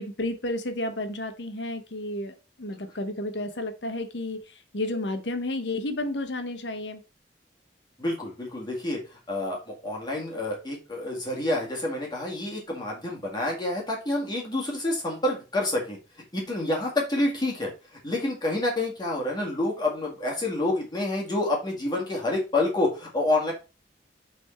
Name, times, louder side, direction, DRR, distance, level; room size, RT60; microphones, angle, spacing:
voice 1, 0.0-7.0, left 1 dB, 80° left, 1.1 m, -32 dB
voice 2, 8.0-9.0 9.3-16.0 16.3-17.7 18.0-23.5, left 2 dB, 25° left, 2.0 m, -28 dB
6.4 x 4.2 x 4.4 m
head